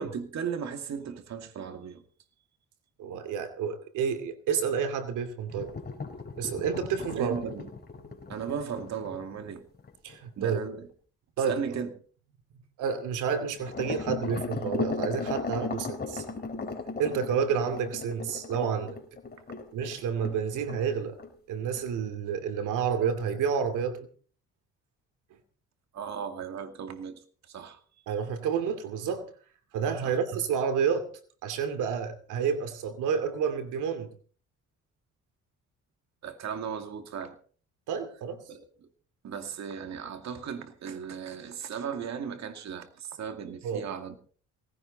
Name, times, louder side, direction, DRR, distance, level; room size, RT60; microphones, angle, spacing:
voice 1, 0.0-2.0 7.0-7.7 8.3-9.6 10.4-10.9 11.4-11.9 25.9-27.8 30.0-30.2 36.2-37.4 38.5-38.9 39.2-44.2, right 7 dB, 65° right, 2.4 m, -36 dB
voice 2, 3.0-5.7 6.4-7.3 10.0-10.6 11.4-11.6 12.8-16.2 17.0-19.0 19.7-21.2 21.5-24.1 28.1-29.2 29.7-31.1 31.4-34.1 37.9-38.4 43.6-43.8, right 7 dB, 90° right, 2.6 m, -29 dB
sound 1, 5.5-10.2 13.6-20.4 20.7-20.9 21.2-21.3 21.7-21.8, left 4 dB, 30° left, 4.2 m, -36 dB
18.5 x 16.5 x 4.1 m
cardioid pair, 90°, 30 cm